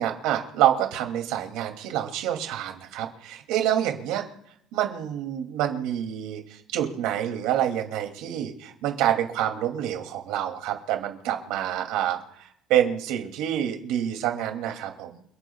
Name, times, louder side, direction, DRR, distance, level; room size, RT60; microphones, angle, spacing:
voice 1, 0.0-4.2 4.7-12.2 12.7-15.2, right 11 dB, 85° right, 3 dB, 2.7 m, -27 dB
29.5 x 10.5 x 2.4 m, 0.74 s
cardioid pair, 175°, 0 cm